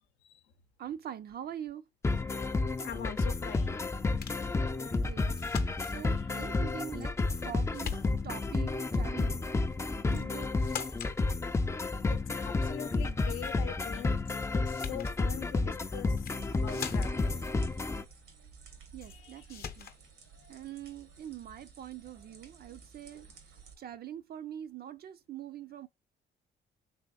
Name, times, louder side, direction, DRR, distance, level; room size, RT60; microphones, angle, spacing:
voice 1, 0.8-1.8 5.1-5.4 5.9-7.1 7.4-8.0 8.2-9.4 10.1-10.5 18.9-19.9 20.5-23.3 23.8-25.9, right 10 dB, 50° right, 0.4 m, -43 dB
sound 1, 2.0-18.0, left 3 dB, 15° left, 0.3 m, -31 dB
voice 2, 2.8-3.8 12.1-14.2 14.5-16.1 16.5-17.4 19.1-19.4 20.4-20.5, left 10 dB, 90° left, 0.7 m, -43 dB
sound 2, 4.2-4.5 5.4-6.0 7.0-7.5 7.7-8.4 10.1-10.3 10.6-11.2 14.2-14.4 14.7-15.2 16.1-16.4 16.7-17.3 19.0-19.2 19.5-20.0, left 7 dB, 50° left, 0.7 m, -41 dB
sound 3, 16.3-23.7, right 5 dB, 90° right, 1.3 m, -54 dB
3.5 x 3.3 x 2.3 m
cardioid pair, 90°, 20 cm